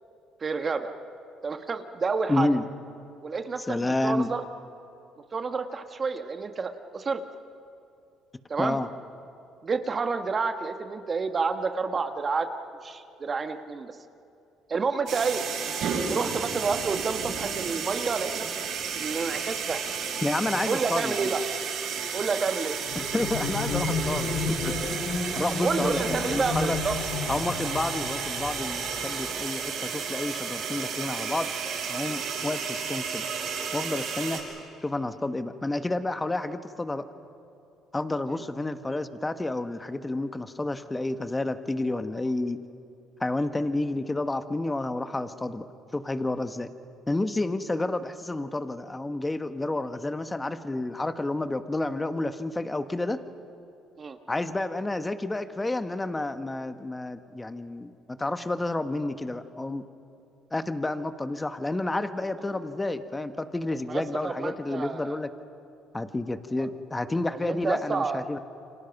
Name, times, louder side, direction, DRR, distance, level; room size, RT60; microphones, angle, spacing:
voice 1, 0.4-0.9 1.4-2.5 3.2-4.4 5.3-7.2 8.5-8.8 9.6-12.5 12.8-14.0 14.7-15.4 16.1-18.5 18.9-19.8 20.7-21.4 22.1-22.8 25.6-27.0 38.3-38.4 54.0-54.2 63.9-65.2 66.6-66.7 67.3-68.2, right 4 dB, 35° right, 7 dB, 1.4 m, -29 dB
voice 2, 2.3-2.7 3.7-4.3 8.6-8.9 20.2-21.3 22.9-24.3 24.6-25.0 25.3-26.8 27.3-31.5 31.9-33.2 33.7-34.4 34.8-37.0 37.9-42.6 43.2-45.7 45.9-46.7 47.1-53.2 54.3-59.8 60.5-65.3 65.9-68.4, left 2 dB, 15° left, 9 dB, 1.3 m, -30 dB
sound 1, 15.1-34.4, right 6 dB, 70° right, 6.9 m, -32 dB
sound 2, 22.7-29.7, left 4 dB, 65° left, 6.1 m, -32 dB
29.5 x 25.5 x 6.0 m, 2.7 s
supercardioid pair, 80°, 0 cm